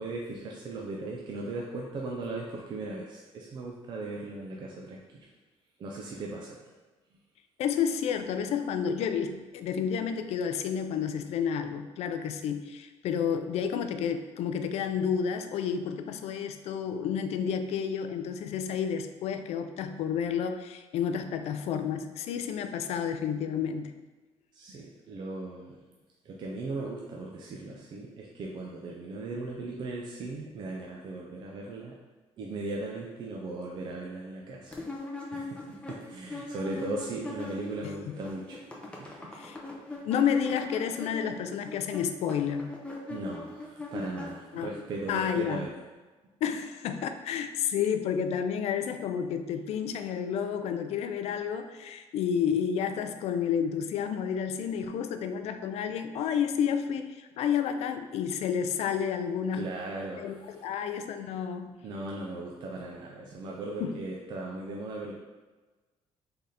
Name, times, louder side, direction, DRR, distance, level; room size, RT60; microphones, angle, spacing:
voice 1, 0.0-5.3 5.8-6.7 24.5-25.8 26.2-31.9 32.4-34.8 35.3-38.6 39.0-39.3 43.1-45.7 59.5-60.6 61.8-65.1, right 2 dB, 45° right, -2 dB, 0.5 m, -38 dB
voice 2, 7.6-23.9 38.1-38.2 39.3-39.6 40.0-42.7 44.5-44.7 45.1-45.6 46.4-59.7 60.2-61.8 63.8-63.9, left 7 dB, 70° left, 8 dB, 0.4 m, -30 dB
sound 1, 34.7-37.9 38.1-44.8, left 2 dB, 10° left, 0.6 m, -40 dB
3.8 x 3.4 x 4.1 m, 1.3 s
cardioid pair, 165°, 11 cm